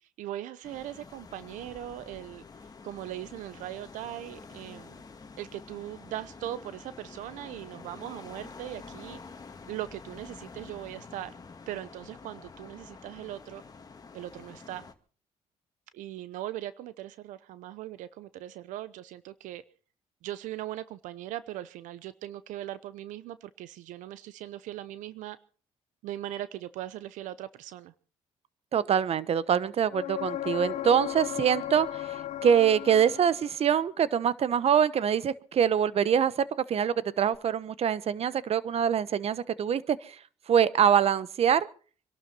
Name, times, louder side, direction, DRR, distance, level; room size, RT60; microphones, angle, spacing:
voice 1, 0.2-2.4 2.8-5.0 5.4-9.2 9.7-11.3 11.7-13.6 14.1-14.9 15.9-19.6 20.2-25.4 26.0-27.9, right 13 dB, 85° right, 0.8 m, -39 dB
sound 1, 0.6-14.9, left 4 dB, 30° left, 2.1 m, -48 dB
voice 2, 28.7-40.2 40.5-41.7, right 8 dB, 55° right, 1.1 m, -25 dB
sound 2, 29.9-33.7 37.3-37.4, left 13 dB, 65° left, 1.0 m, -35 dB
25.5 x 12.0 x 4.2 m
cardioid pair, 85°, 13 cm